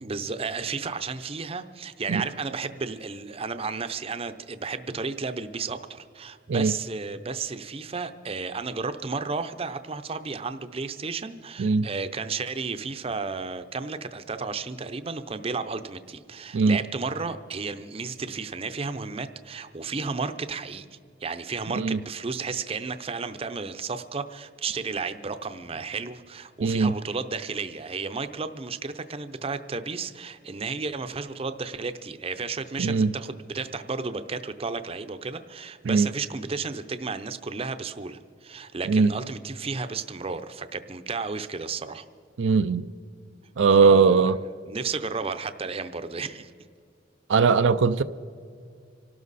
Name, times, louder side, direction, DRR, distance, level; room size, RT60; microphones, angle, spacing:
voice 1, 0.0-20.9 21.2-42.1 43.8-44.3 44.7-46.5, right 4 dB, 30° right, 10 dB, 0.6 m, -33 dB
voice 2, 26.6-26.9 32.8-33.1 35.9-36.1 38.9-39.1 42.4-42.9 43.6-44.4 47.3-48.0, right 5 dB, 85° right, 11 dB, 0.5 m, -20 dB
25.5 x 12.5 x 4.1 m, 2.3 s
head